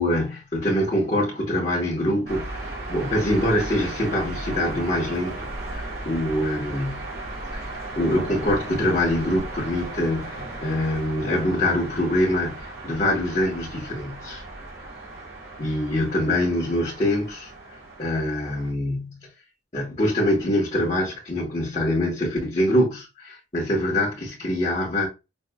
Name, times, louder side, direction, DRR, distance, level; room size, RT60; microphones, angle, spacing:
voice 1, 0.0-7.1 7.5-14.4 15.6-17.5 18.0-19.2 19.7-25.1, left 1 dB, 35° left, 1.2 m, -24 dB
sound 1, 2.3-18.7, right 2 dB, 60° right, 1.8 m, -36 dB
5.5 x 2.5 x 2.3 m
head